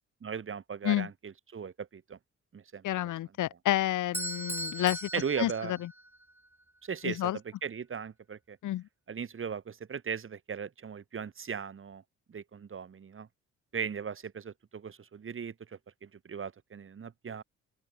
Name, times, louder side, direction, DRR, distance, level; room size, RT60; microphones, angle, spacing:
voice 1, 0.2-2.2 2.5-2.8 5.1-5.8 6.8-7.3 7.6-8.6 9.1-12.0 12.3-13.3 13.7-17.4, right 6 dB, 45° right, 3.8 m, -38 dB
voice 2, 2.8-5.1 5.4-5.9 7.0-7.4 8.6-8.8, left 14 dB, 80° left, 3.8 m, -30 dB
Bell / Doorbell, 4.1-6.2, right 1 dB, 5° right, 4.0 m, -38 dB
open air
cardioid pair, 90°, 30 cm